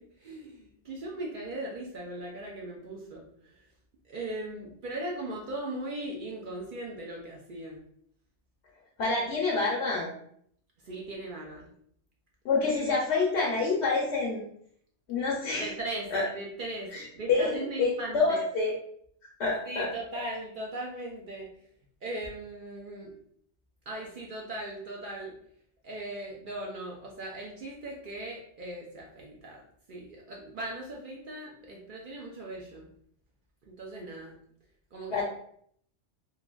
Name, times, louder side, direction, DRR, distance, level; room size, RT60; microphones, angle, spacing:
voice 1, 0.0-3.7 4.0-7.8 10.8-11.7 15.5-18.5 19.6-21.5 22.0-23.1 23.9-25.3 25.8-29.6 29.9-32.9 33.6-34.4 34.9-35.2, right 1 dB, 60° right, -2 dB, 0.5 m, -39 dB
voice 2, 9.0-10.1 12.4-14.4 15.1-15.7 16.1-16.3 16.9-18.7 19.4-19.9 35.1-35.2, left 3 dB, 70° left, -2 dB, 0.8 m, -27 dB
3.2 x 2.4 x 2.2 m, 0.66 s
omnidirectional pair, 1.3 m